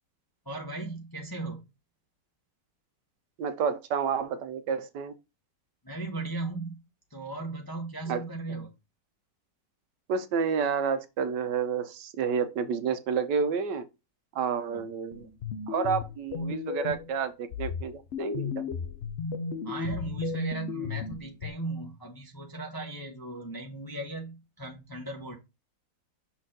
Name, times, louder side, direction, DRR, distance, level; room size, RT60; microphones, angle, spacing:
voice 1, 0.5-1.6 5.8-6.8 7.1-8.7 14.7-14.9 19.6-25.4, right 2 dB, 20° left, 0.6 m, -37 dB
voice 2, 3.4-5.1 8.1-8.2 10.1-13.8 14.3-15.3 15.7-18.5, right 6 dB, 80° right, 1.4 m, -30 dB
sound 1, 15.1-17.1 17.5-21.5, left 6 dB, 65° left, 0.7 m, -34 dB
6.1 x 4.3 x 3.7 m
omnidirectional pair, 1.9 m